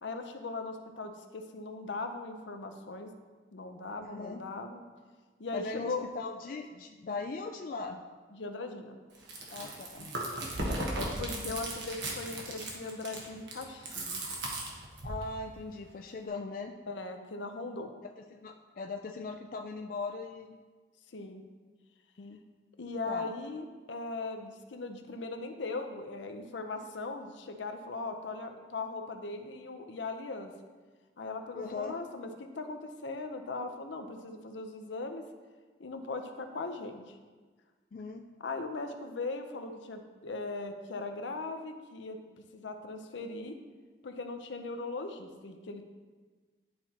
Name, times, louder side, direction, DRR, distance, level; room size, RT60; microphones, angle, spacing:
voice 1, 0.0-3.1 3.5-4.8 5.4-6.1 8.3-9.0 10.9-14.2 16.9-17.9 21.1-21.4 22.8-30.5 31.2-35.2 35.8-37.2 38.4-42.2 42.5-43.6 44.0-45.8, left 3 dB, 80° left, 5 dB, 0.7 m, -39 dB
voice 2, 4.0-4.4 5.5-8.0 9.5-10.1 11.3-11.6 15.0-16.7 18.0-20.6 22.2-22.4 23.1-23.3 31.5-31.9 37.9-38.2, left 3 dB, 45° left, 3 dB, 0.3 m, -39 dB
Chewing mastication, 9.1-15.2, right 1 dB, 75° right, 1.2 m, -37 dB
11.0 x 4.3 x 2.9 m, 1.4 s
head